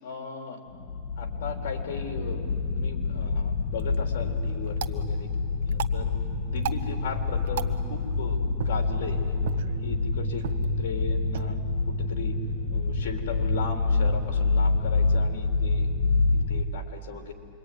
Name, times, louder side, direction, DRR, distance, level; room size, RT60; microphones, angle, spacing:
voice 1, 0.0-0.6 1.2-5.3 5.7-6.1 6.4-9.4 9.8-10.5 10.8-11.6 11.9-12.4 12.7-15.9 16.3-17.3, left 6 dB, 80° left, 3 dB, 3.8 m, -37 dB
sound 1, 0.7-16.6, left 3 dB, 60° left, 2.1 m, -27 dB
sound 2, 3.6-13.7, right 10 dB, 80° right, 1.1 m, -41 dB
27.0 x 23.5 x 9.5 m, 2.5 s
supercardioid pair, 145°, 0 cm